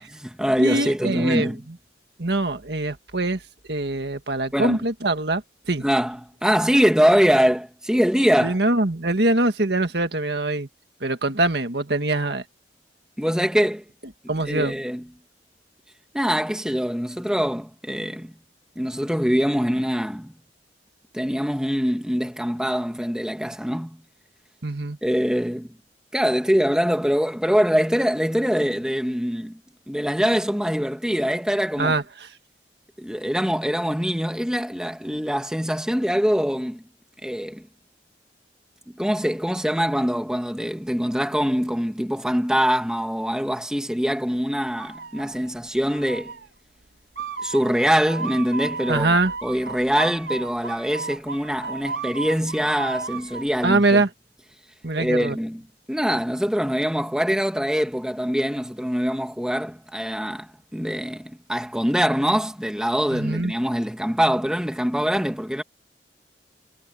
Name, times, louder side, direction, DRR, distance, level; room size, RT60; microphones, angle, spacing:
voice 1, 0.0-1.6 4.5-4.8 5.8-8.6 13.2-13.8 14.2-15.0 16.1-18.3 18.7-20.3 21.1-24.0 25.0-25.7 26.1-29.6 29.9-31.9 33.0-36.8 37.2-37.7 39.0-46.3 47.4-54.0 54.9-55.6 55.9-65.6, equal, 5° right, 1.5 m, -23 dB
voice 2, 0.6-1.5 2.2-3.4 3.7-5.4 5.7-5.8 8.4-10.7 11.0-12.4 14.3-14.7 24.6-25.0 31.8-32.0 48.9-49.3 53.6-54.1 54.8-55.4 63.1-63.5, right 2 dB, 65° right, 1.8 m, -23 dB
sound 1, 44.8-45.5 45.9-46.5 47.2-53.5, right 4 dB, 80° right, 4.9 m, -34 dB
head